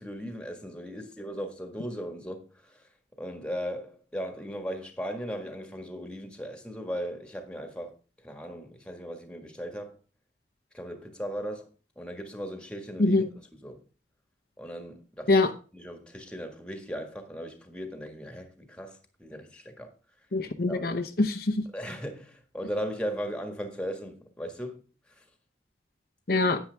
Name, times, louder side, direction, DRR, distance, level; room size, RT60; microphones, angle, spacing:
voice 1, 0.0-2.8 3.2-7.9 8.2-10.0 10.7-11.7 11.9-13.2 13.6-13.8 14.6-19.9 20.7-20.9 21.7-24.8 25.1-25.2, equal, 5° left, 1.7 m, -37 dB
voice 2, 20.3-21.6 26.3-26.6, left 2 dB, 55° left, 0.8 m, -24 dB
10.0 x 9.3 x 3.5 m
head